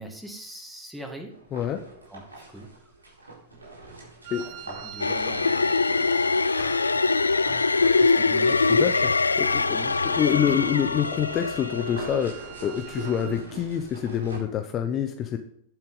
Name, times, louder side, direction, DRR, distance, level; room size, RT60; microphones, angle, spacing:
voice 1, 0.0-1.3 2.1-2.9 4.4-6.4 7.8-9.1 9.7-10.6, right 1 dB, 5° right, 3 dB, 2.2 m, -42 dB
sound 1, 1.3-5.9 6.6-14.4, right 2 dB, 90° right, 4.2 m, -43 dB
voice 2, 1.5-1.8 4.3-4.5 8.7-9.8 10.0-15.4, left 9 dB, 30° left, 6 dB, 0.9 m, -27 dB
Wind instrument woodwind instrument, 4.2-13.5, right 9 dB, 55° right, 1.8 m, -44 dB
sound 2, 5.0-12.3, left 4 dB, 90° left, 0.3 m, -23 dB
10.5 x 8.7 x 3.9 m, 0.68 s
hypercardioid pair, 100°, 0 cm